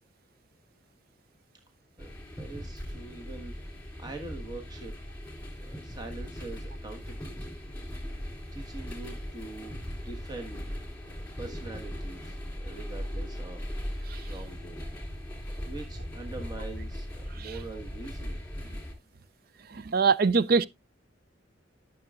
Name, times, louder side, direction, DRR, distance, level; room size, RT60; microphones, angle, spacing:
sound 1, 2.0-18.9, equal, 10° left, 3.6 m, -39 dB
voice 1, 2.0-4.9 5.6-7.6 8.1-8.2 8.5-10.8 11.4-14.9 15.6-18.4, right 3 dB, 20° right, 1.4 m, -44 dB
voice 2, 19.7-20.7, right 5 dB, 50° right, 0.4 m, -22 dB
13.5 x 6.7 x 2.4 m
head